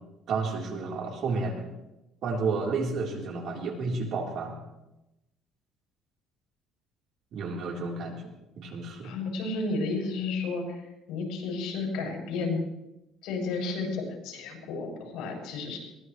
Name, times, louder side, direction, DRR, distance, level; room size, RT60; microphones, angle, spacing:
voice 1, 0.3-1.7 2.2-4.6 7.3-8.2 8.6-9.1, right 4 dB, 60° right, 0 dB, 3.9 m, -31 dB
voice 2, 9.0-12.6 13.2-15.8, left 3 dB, 75° left, -1 dB, 7.5 m, -32 dB
22.5 x 19.0 x 3.3 m, 0.93 s
cardioid pair, 125°, 0 cm